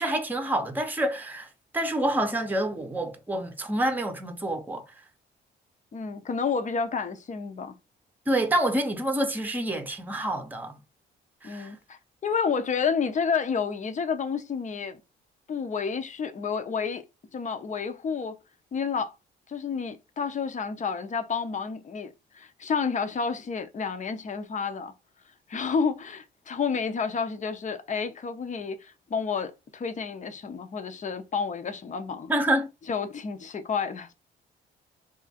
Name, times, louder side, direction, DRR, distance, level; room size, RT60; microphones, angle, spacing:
voice 1, 0.0-1.5 1.7-4.8 8.3-10.7 11.4-11.7 32.3-32.7, right 1 dB, 10° right, 0.8 m, -27 dB
voice 2, 5.9-7.7 11.4-15.0 15.5-17.0 17.3-18.4 18.7-19.1 19.5-24.9 25.5-32.3 32.9-34.1, left 5 dB, 40° left, 0.7 m, -30 dB
3.5 x 2.5 x 4.1 m
cardioid pair, 90°, 20 cm